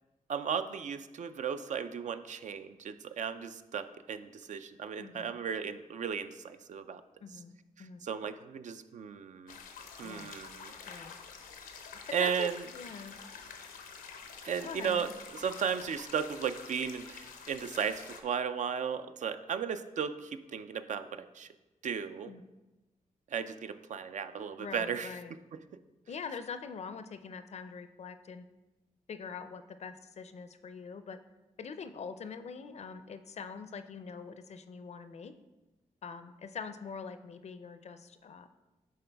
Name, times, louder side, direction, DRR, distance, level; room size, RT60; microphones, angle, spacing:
voice 1, 0.3-7.0 7.8-9.6 10.0-10.7 12.1-12.6 14.4-21.5 21.8-22.3 23.3-25.1, right 7 dB, 60° right, 10 dB, 0.4 m, -35 dB
voice 2, 5.0-5.3 7.2-7.5 7.8-8.0 10.0-10.3 10.8-11.1 12.2-13.2 14.6-15.1 22.3-22.4 24.6-25.3 26.1-28.5 29.1-31.2 31.6-35.3 36.0-38.5, left 5 dB, 50° left, 10 dB, 0.5 m, -43 dB
sound 1, 9.5-18.2, left 5 dB, 90° left, 0.7 m, -48 dB
9.9 x 3.8 x 3.4 m, 1.1 s
cardioid pair, 85°, 14 cm